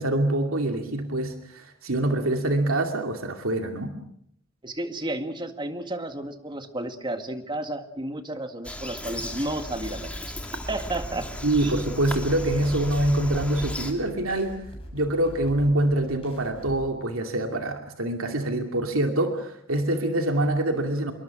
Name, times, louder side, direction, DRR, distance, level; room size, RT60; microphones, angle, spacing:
voice 1, 0.0-4.0 11.4-14.5 14.9-21.1, right 1 dB, 85° right, 4 dB, 2.5 m, -25 dB
voice 2, 4.6-10.3 10.7-11.3 11.6-11.7, right 1 dB, 20° right, 7 dB, 1.9 m, -32 dB
Bird vocalization bird call bird song, 8.6-13.9, left 1 dB, 5° left, 2.9 m, -35 dB
sound 1, 9.1-16.8, equal, 30° left, 6.3 m, -43 dB
26.5 x 23.0 x 6.1 m, 0.68 s
head